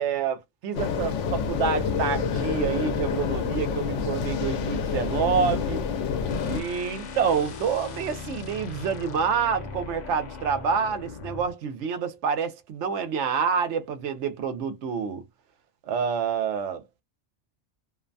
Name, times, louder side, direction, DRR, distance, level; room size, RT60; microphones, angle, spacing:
voice 1, 0.0-5.8 6.5-15.2 15.8-17.0, right 6 dB, 75° right, 0.9 m, -27 dB
sound 1, 0.7-6.6, left 6 dB, 80° left, 0.9 m, -28 dB
sound 2, 6.3-11.5, left 5 dB, 50° left, 0.5 m, -39 dB
2.6 x 2.1 x 2.5 m
omnidirectional pair, 1.2 m